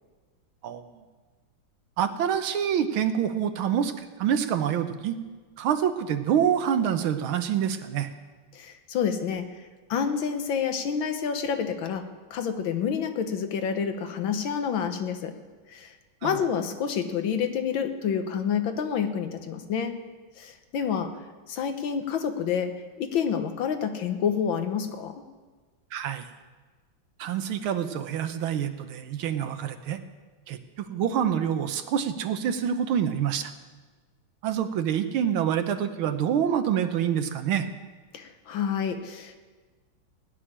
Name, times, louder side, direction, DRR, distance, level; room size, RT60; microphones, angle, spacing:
voice 1, 0.6-1.0 2.0-5.2 5.6-8.1 16.2-16.4 25.9-26.3 27.2-30.0 30.5-33.5 34.4-37.7, right 9 dB, 90° right, 9 dB, 1.7 m, -26 dB
voice 2, 8.5-12.0 12.3-15.3 15.7-15.9 16.2-20.0 20.4-21.1 21.5-22.7 23.0-25.2 38.1-39.4, left 7 dB, 75° left, 7 dB, 1.8 m, -28 dB
16.0 x 6.4 x 9.9 m, 1.4 s
omnidirectional pair, 2.2 m